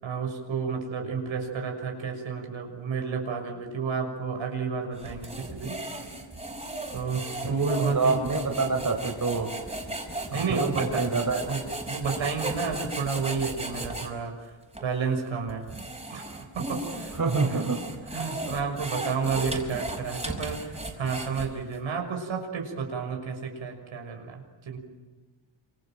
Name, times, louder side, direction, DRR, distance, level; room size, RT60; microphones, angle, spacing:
voice 1, 0.0-5.7 6.9-8.2 10.3-11.1 11.5-14.5 14.8-15.6 16.1-17.6 18.1-24.8, right 5 dB, 90° right, 1 dB, 6.5 m, -31 dB
sound 1, 5.0-14.1 14.7-14.9 15.5-21.8, right 2 dB, 15° right, 6.0 m, -36 dB
voice 2, 7.4-9.5 10.3-11.4 17.2-17.9, right 4 dB, 40° right, 2 dB, 5.5 m, -27 dB
28.0 x 27.0 x 7.7 m, 1.3 s
wide cardioid pair, 105°, 46 cm